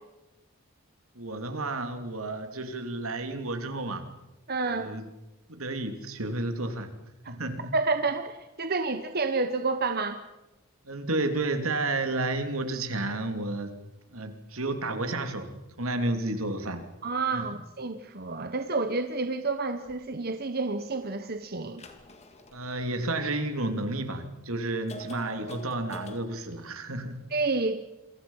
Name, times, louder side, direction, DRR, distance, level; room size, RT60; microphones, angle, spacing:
voice 1, 1.1-4.0 4.7-5.0 5.5-6.9 7.3-7.7 10.8-13.7 14.1-16.8 17.3-17.4 22.5-27.2, right 2 dB, 80° right, 7 dB, 3.1 m, -31 dB
voice 2, 4.5-4.9 7.7-10.2 17.0-21.8 27.3-27.8, right 3 dB, 45° right, 8 dB, 1.3 m, -29 dB
sound 1, 19.9-20.0 21.7-23.6 24.2-24.3 24.9-26.2, right 1 dB, 30° left, 2.4 m, -45 dB
28.5 x 23.0 x 5.7 m, 1.0 s
head